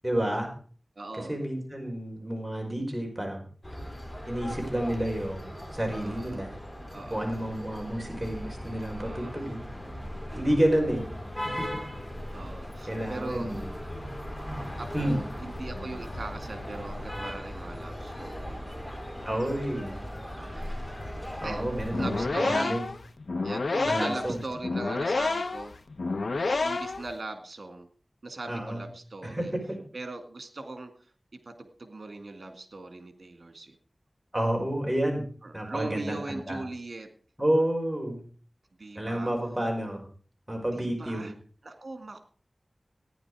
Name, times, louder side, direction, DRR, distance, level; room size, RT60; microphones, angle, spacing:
voice 1, 0.0-0.5 1.3-3.4 4.2-6.5 7.1-9.7 10.4-11.0 11.4-11.7 12.9-13.6 14.9-15.2 19.3-19.9 21.4-22.8 23.9-24.4 28.5-28.8 29.2-29.8 34.3-35.3 35.5-36.6 37.4-38.2 39.0-40.0 40.5-41.3, right 1 dB, 15° right, 1 dB, 5.2 m, -30 dB
voice 2, 1.0-1.4 6.0-6.4 6.9-7.4 9.0-9.5 10.3-10.6 12.3-13.7 14.8-19.4 20.3-20.8 21.4-22.7 23.4-25.8 26.4-27.9 28.2-29.5 29.9-30.9 31.5-33.8 35.4-37.1 38.8-39.3 40.7-41.3 41.6-42.2, right 2 dB, 75° right, 8 dB, 2.1 m, -40 dB
sound 1, 3.6-22.3, equal, 15° left, 3.7 m, -38 dB
sound 2, 21.9-27.1, left 3 dB, 90° left, 0.7 m, -29 dB
14.5 x 10.5 x 4.9 m, 0.42 s
wide cardioid pair, 65°, 0 cm